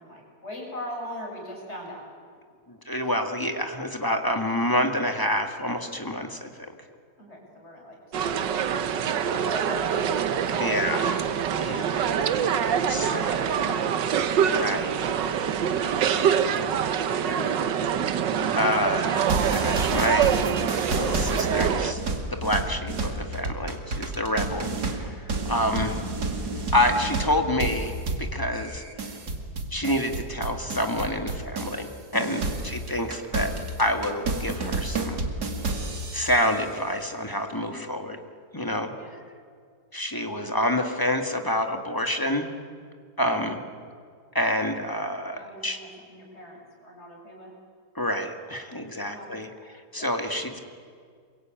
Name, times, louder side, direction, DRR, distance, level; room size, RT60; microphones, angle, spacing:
voice 1, 0.0-2.0 3.0-3.1 7.2-8.8 9.1-10.9 12.1-14.1 14.7-18.2 32.3-32.6 37.7-37.9 39.0-39.1 45.3-47.5 49.0-49.3 50.0-50.1, equal, 35° left, -2 dB, 7.8 m, -41 dB
voice 2, 2.7-6.5 10.6-12.1 12.9-13.2 14.4-14.9 18.6-20.3 20.9-22.0 22.3-26.0 26.7-28.8 29.7-35.2 36.1-38.2 38.5-38.9 39.9-42.5 43.2-43.6 44.3-45.8 48.0-50.6, left 1 dB, 10° left, 5 dB, 1.9 m, -28 dB
sound 1, 8.1-21.9, right 8 dB, 90° right, 1.7 m, -25 dB
sound 2, 19.2-31.9 32.1-36.5, right 3 dB, 65° right, 2.8 m, -30 dB
Gurgling / Sink (filling or washing) / Liquid, 24.5-24.7 25.6-28.3 28.7-29.0 29.5-29.8 30.7-30.9, equal, 60° left, 3.9 m, -47 dB
27.5 x 23.5 x 9.1 m, 2.1 s
omnidirectional pair, 1.9 m